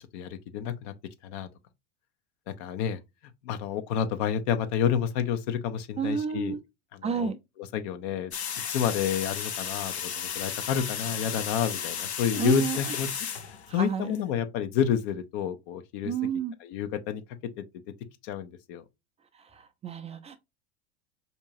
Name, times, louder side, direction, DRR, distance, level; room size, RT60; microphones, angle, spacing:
voice 1, 0.1-0.9 1.2-1.5 2.5-3.0 3.4-6.6 6.9-7.3 7.6-8.3 8.7-13.1 13.7-16.1 16.6-17.2 17.6-17.7 18.2-18.8, left 8 dB, 50° left, 0.7 m, -29 dB
voice 2, 6.0-6.6 7.0-7.4 12.3-12.8 13.7-14.2 16.0-16.5 19.4-20.4, right 7 dB, 20° right, 0.5 m, -30 dB
sound 1, 8.3-14.2, left 7 dB, 80° left, 0.8 m, -34 dB
4.5 x 2.8 x 2.6 m
hypercardioid pair, 85°, 33 cm